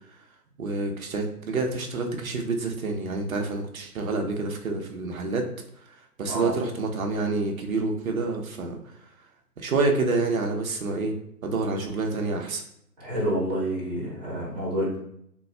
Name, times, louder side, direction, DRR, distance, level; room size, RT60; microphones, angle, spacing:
voice 1, 0.6-5.5 6.2-8.8 9.6-11.1 11.4-12.6, right 3 dB, 60° right, 3 dB, 0.6 m, -27 dB
voice 2, 13.0-15.0, right 1 dB, 25° right, -6 dB, 0.8 m, -28 dB
2.8 x 2.3 x 2.2 m, 0.72 s
figure-of-eight pair, 140°, 48 cm